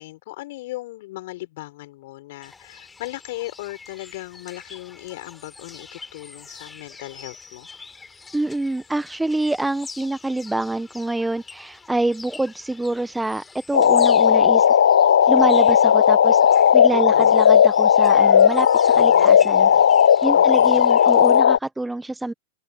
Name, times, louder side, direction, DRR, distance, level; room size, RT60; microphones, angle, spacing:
voice 1, 0.0-7.7 16.9-17.3 18.9-19.8 20.3-20.9, left 18 dB, 60° left, 6.1 m, -37 dB
sound 1, 2.4-21.4, left 4 dB, 15° left, 6.6 m, -45 dB
voice 2, 8.3-14.7 15.3-16.4 16.7-19.7 20.2-22.3, right 2 dB, 5° right, 1.2 m, -26 dB
sound 2, 13.7-21.6, left 8 dB, 75° left, 0.6 m, -15 dB
figure-of-eight pair, 90°, 0 cm